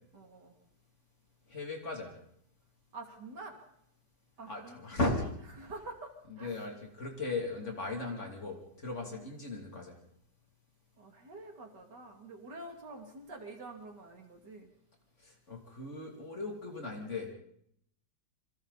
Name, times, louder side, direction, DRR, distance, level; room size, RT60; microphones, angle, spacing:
voice 1, 0.1-0.5 2.9-3.6 4.4-4.8 5.6-6.6 9.0-9.2 11.0-14.7, right 2 dB, 65° right, 3 dB, 3.4 m, -47 dB
voice 2, 1.5-2.2 4.5-5.3 6.3-10.0 15.2-17.3, left 2 dB, 40° left, 1 dB, 3.3 m, -37 dB
27.0 x 24.5 x 4.2 m, 0.72 s
omnidirectional pair, 2.0 m